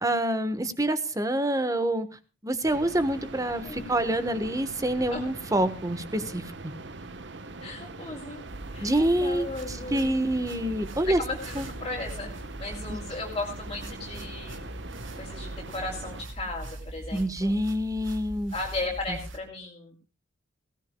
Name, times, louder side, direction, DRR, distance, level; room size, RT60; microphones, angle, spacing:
voice 1, 0.0-2.1 2.4-6.7 8.8-11.2 11.5-11.7 12.9-13.0 17.1-18.5 19.1-19.2, right 1 dB, 20° right, 12 dB, 1.3 m, -27 dB
sound 1, 2.6-16.2, right 3 dB, 65° right, 1.2 m, -42 dB
voice 2, 7.6-8.4 8.7-10.3 11.0-12.3 12.6-14.7 15.1-17.5 18.5-20.0, left 2 dB, 25° left, -3 dB, 3.0 m, -36 dB
sound 2, 8.5-19.4, right 1 dB, 85° right, 2.2 m, -41 dB
19.5 x 16.5 x 2.3 m, 0.33 s
head